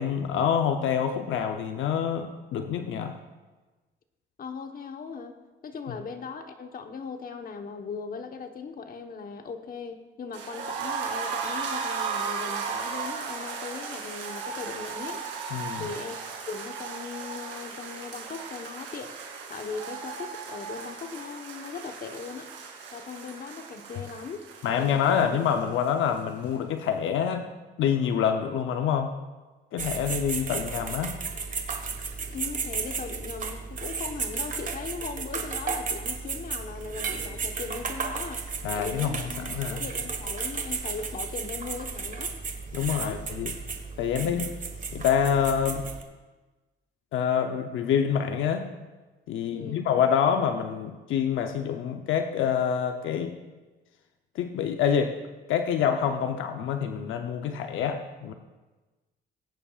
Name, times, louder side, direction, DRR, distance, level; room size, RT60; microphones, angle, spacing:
voice 1, 0.0-3.2 15.5-15.9 24.6-27.5 27.8-29.2 29.7-31.2 38.6-39.8 42.7-43.5 44.0-44.6 44.9-45.9 47.1-48.7 49.3-53.4 54.3-55.2 55.5-58.3, left 8 dB, 80° left, 6 dB, 0.7 m, -26 dB
voice 2, 4.4-5.4 5.6-15.2 15.8-16.2 16.5-19.2 19.5-22.5 22.9-24.5 24.8-25.2 32.2-42.4 43.0-43.2 49.5-49.9, left 5 dB, 45° left, 6 dB, 1.1 m, -39 dB
sound 1, 10.3-26.2 26.4-26.5 26.8-26.9, right 5 dB, 85° right, 2.8 m, -36 dB
sound 2, 29.8-46.0, right 5 dB, 40° right, 1.5 m, -34 dB
20.0 x 9.9 x 2.4 m, 1.2 s
cardioid pair, 90°, 20 cm